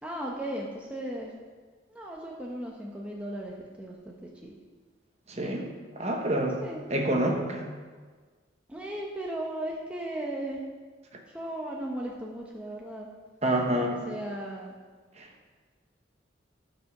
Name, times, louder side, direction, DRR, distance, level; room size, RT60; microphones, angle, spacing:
voice 1, 0.0-1.3 1.9-4.5 6.6-6.8 8.7-10.6 11.3-13.1 14.1-14.7, right 1 dB, 5° right, -2 dB, 0.9 m, -36 dB
voice 2, 5.3-5.7 6.0-6.6 6.9-7.7 13.4-14.0 15.2-15.3, right 1 dB, 35° right, 1 dB, 1.2 m, -27 dB
13.5 x 5.3 x 6.0 m, 1.5 s
head